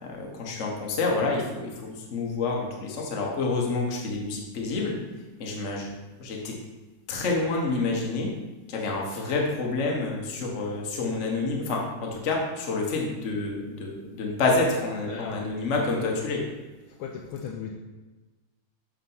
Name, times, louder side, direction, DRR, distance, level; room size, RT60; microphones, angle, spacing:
voice 1, 0.0-4.9 5.4-5.9 6.2-6.5 7.1-8.3 8.7-16.4, left 3 dB, 45° left, -1 dB, 1.1 m, -28 dB
voice 2, 15.1-15.4 16.0-16.1 17.0-17.7, left 7 dB, 80° left, 1 dB, 1.4 m, -36 dB
7.3 x 3.7 x 5.5 m, 1.2 s
omnidirectional pair, 2.4 m